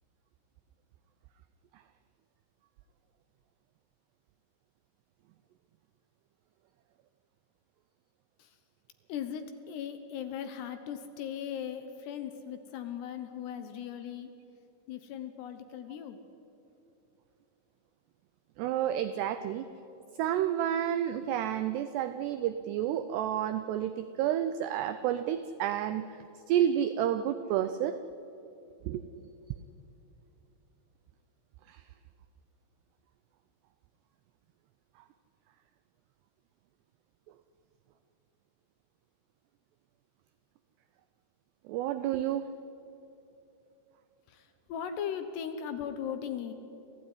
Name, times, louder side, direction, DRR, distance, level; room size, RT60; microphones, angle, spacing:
voice 1, 9.1-14.3 14.9-16.2 44.3-46.5, left 8 dB, 75° left, 9 dB, 2.7 m, -38 dB
voice 2, 18.6-19.7 20.2-26.1 26.5-28.0 28.9-29.3 31.7-31.8 41.7-42.5, right 10 dB, 90° right, 11 dB, 2.3 m, -30 dB
27.5 x 15.5 x 9.7 m, 2.9 s
omnidirectional pair, 5.6 m